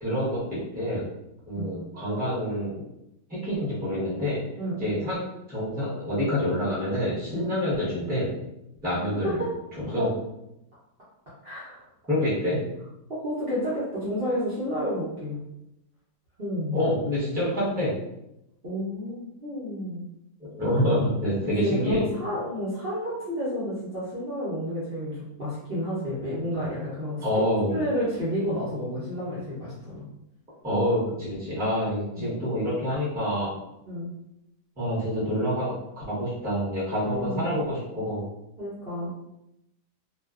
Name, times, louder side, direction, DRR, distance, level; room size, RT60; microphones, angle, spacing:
voice 1, 0.0-1.0 1.5-2.8 3.3-4.4 4.8-5.2 5.5-8.4 8.8-9.4 9.9-10.1 12.1-12.6 16.7-17.9 20.4-22.0 27.2-27.8 30.6-33.5 34.8-38.2, equal, 10° right, -9 dB, 0.7 m, -27 dB
voice 2, 11.4-11.8 13.2-15.4 16.4-16.9 18.6-20.0 21.6-27.2 27.7-30.0 32.1-32.3 33.8-34.1 36.9-37.5 38.6-39.1, equal, 45° right, -10 dB, 0.9 m, -30 dB
2.5 x 2.3 x 2.3 m, 0.86 s
omnidirectional pair, 1.7 m